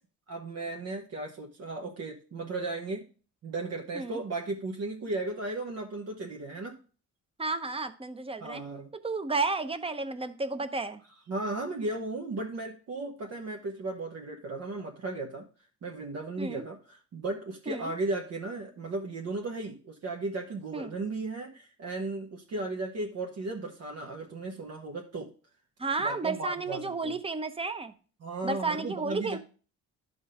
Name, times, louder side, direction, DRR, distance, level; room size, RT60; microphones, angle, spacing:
voice 1, 0.3-3.1 3.4-6.8 8.4-8.9 11.3-15.4 15.8-25.3 26.0-27.2 28.2-29.4, right 2 dB, 55° right, 1 dB, 1.1 m, -35 dB
voice 2, 7.4-8.6 9.0-11.0 16.4-16.6 17.7-17.9 20.7-20.9 25.8-27.9 28.4-29.4, right 3 dB, 20° right, 10 dB, 0.9 m, -32 dB
11.5 x 3.8 x 5.0 m, 0.39 s
cardioid pair, 90°, 30 cm